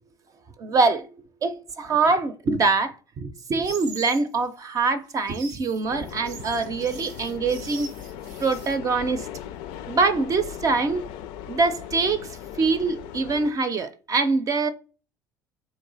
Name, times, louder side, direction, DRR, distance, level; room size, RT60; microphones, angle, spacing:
voice 1, 0.6-1.1 1.4-7.9 8.4-9.3 9.9-11.1 11.5-12.3 12.6-14.7, right 4 dB, 40° right, 0.6 m, -24 dB
sound 1, 3.6-4.3 5.1-8.8, right 4 dB, 85° right, 0.7 m, -42 dB
sound 2, 5.9-13.5, left 10 dB, 70° left, 0.4 m, -38 dB
3.5 x 3.1 x 3.9 m
hypercardioid pair, 70°, 9 cm